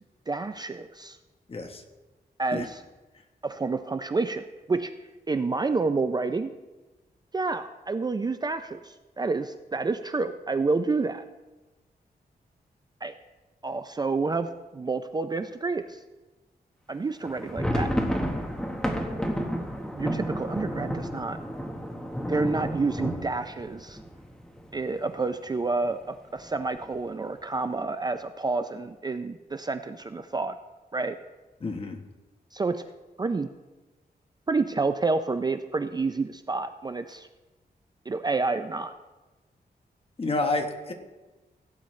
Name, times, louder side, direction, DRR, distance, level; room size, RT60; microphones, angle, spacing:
voice 1, 0.3-1.2 2.4-2.8 3.4-4.9 5.3-6.5 7.3-11.2 13.0-13.1 13.6-16.0 16.9-17.9 20.0-21.4 22.3-24.0 24.7-30.6 30.9-31.2 32.5-32.8 33.2-33.5 34.5-37.3 38.1-38.9, right 3 dB, 25° right, 9 dB, 0.4 m, -29 dB
voice 2, 1.5-1.8 2.5-2.7 18.3-18.5 31.6-32.0 40.2-40.9, left 2 dB, 35° left, 5 dB, 1.2 m, -29 dB
sound 1, 17.2-24.9 25.3-25.4 25.6-25.9 26.4-26.9, equal, 5° left, 1.2 m, -31 dB
16.5 x 9.2 x 3.2 m, 1.2 s
wide cardioid pair, 150°, 16 cm